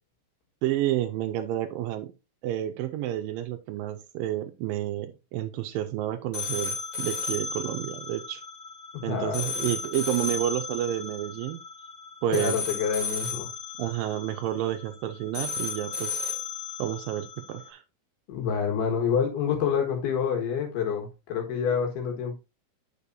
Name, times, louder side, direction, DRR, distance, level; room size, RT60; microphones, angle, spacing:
voice 1, 0.6-2.1 2.4-8.4 9.0-11.6 12.2-12.6 13.8-16.2 16.8-17.8, right 13 dB, 80° right, 9 dB, 2.1 m, -30 dB
sound 1, 6.3-17.7, left 4 dB, 35° left, 1.4 m, -35 dB
voice 2, 8.9-9.7 12.3-13.5 18.3-22.4, left 7 dB, 85° left, 2 dB, 3.6 m, -28 dB
8.4 x 6.6 x 2.7 m, 0.26 s
omnidirectional pair, 4.4 m